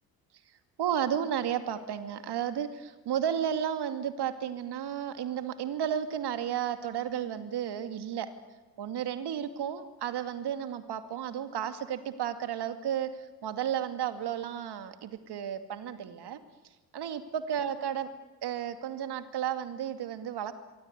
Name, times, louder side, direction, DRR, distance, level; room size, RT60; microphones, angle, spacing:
voice 1, 0.8-8.3 8.8-16.4 16.9-18.1 18.4-20.5, right 9 dB, 55° right, 9 dB, 2.5 m, -33 dB
27.0 x 24.5 x 8.3 m, 1.2 s
hypercardioid pair, 50°, 49 cm